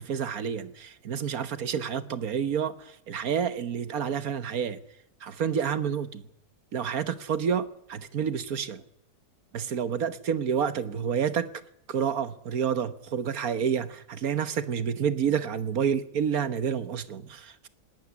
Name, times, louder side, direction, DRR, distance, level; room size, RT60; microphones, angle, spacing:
voice 1, 0.0-4.8 5.2-6.2 6.7-8.8 9.5-11.5 11.9-17.7, right 7 dB, 60° right, 1.5 m, -29 dB
19.5 x 18.0 x 9.6 m
omnidirectional pair, 1.7 m